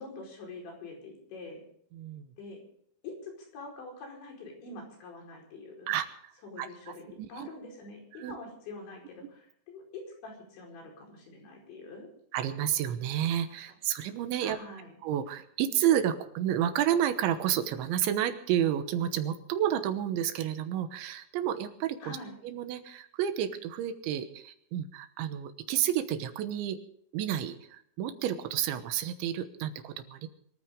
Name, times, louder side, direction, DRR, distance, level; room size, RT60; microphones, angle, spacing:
voice 1, 0.0-1.6 2.4-2.6 3.0-5.9 6.4-7.0 7.3-12.1 14.4-15.0 22.0-22.3, left 3 dB, 70° left, 0 dB, 7.1 m, -45 dB
voice 2, 1.9-2.3 5.9-6.3 6.6-6.7 7.2-7.5 8.2-8.4 12.3-14.6 15.0-22.2 22.4-26.8 27.1-30.3, right 10 dB, 80° right, 9 dB, 3.4 m, -30 dB
24.5 x 14.0 x 3.8 m, 0.64 s
omnidirectional pair, 5.4 m